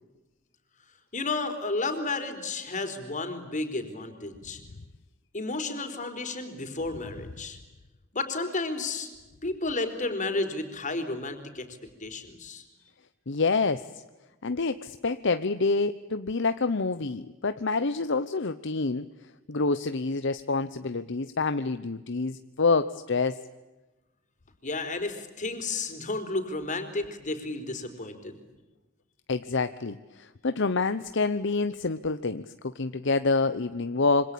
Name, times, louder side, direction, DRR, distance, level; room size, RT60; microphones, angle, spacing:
voice 1, 1.1-4.6 5.3-7.6 8.1-9.1 9.4-11.7 12.0-12.6 24.6-28.4, left 3 dB, 40° left, 7 dB, 4.4 m, -32 dB
voice 2, 13.3-13.9 14.4-19.0 19.5-23.4 29.3-32.5 32.7-34.3, left 3 dB, 65° left, 11 dB, 0.9 m, -27 dB
27.0 x 25.5 x 8.6 m, 1.1 s
head